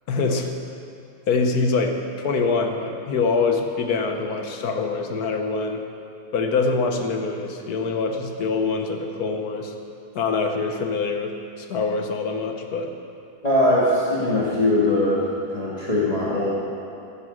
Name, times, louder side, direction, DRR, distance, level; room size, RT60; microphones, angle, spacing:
voice 1, 0.1-0.6 1.3-5.8 6.3-9.7 10.1-12.9, left 4 dB, 70° left, 4 dB, 1.5 m, -24 dB
voice 2, 13.4-16.5, left 1 dB, 25° left, -7 dB, 2.0 m, -21 dB
14.0 x 9.8 x 6.5 m, 2.6 s
omnidirectional pair, 1.7 m